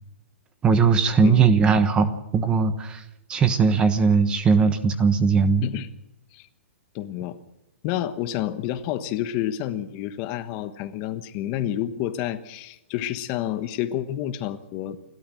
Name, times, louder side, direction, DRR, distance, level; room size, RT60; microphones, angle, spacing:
voice 1, 0.6-3.0 3.3-5.6, right 5 dB, 15° right, 11 dB, 1.2 m, -19 dB
voice 2, 6.9-7.4 7.8-15.0, left 12 dB, 30° left, 11 dB, 1.3 m, -29 dB
29.5 x 12.5 x 7.6 m, 0.89 s
hypercardioid pair, 160°, 7 cm